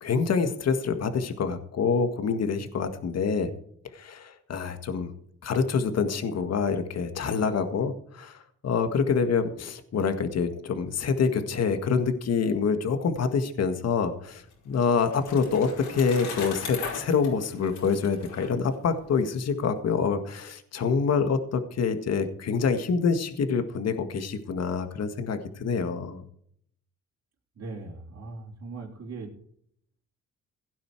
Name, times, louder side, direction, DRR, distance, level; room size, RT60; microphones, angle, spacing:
voice 1, 0.0-3.5 3.9-5.1 5.4-26.2, left 5 dB, 55° left, 8 dB, 1.8 m, -26 dB
Bicycle, 14.2-19.3, left 5 dB, 85° left, 5.2 m, -39 dB
voice 2, 27.6-29.3, right 3 dB, 55° right, -3 dB, 3.6 m, -39 dB
17.0 x 9.5 x 4.7 m, 0.64 s
cardioid pair, 90°, 30 cm